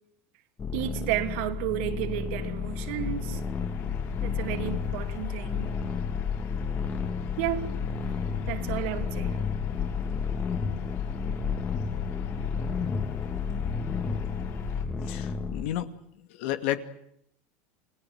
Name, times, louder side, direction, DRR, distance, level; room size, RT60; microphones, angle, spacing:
sound 1, 0.6-15.7, left 5 dB, 25° left, 2.2 m, -33 dB
voice 1, 0.7-3.4 4.2-5.7 7.4-7.7 8.5-9.4, right 13 dB, 75° right, 3.1 m, -32 dB
sound 2, 2.2-14.8, left 10 dB, 50° left, 5.7 m, -36 dB
voice 2, 15.1-15.9 16.4-16.8, left 13 dB, 75° left, 2.5 m, -31 dB
28.5 x 18.5 x 9.5 m
supercardioid pair, 130°, 6 cm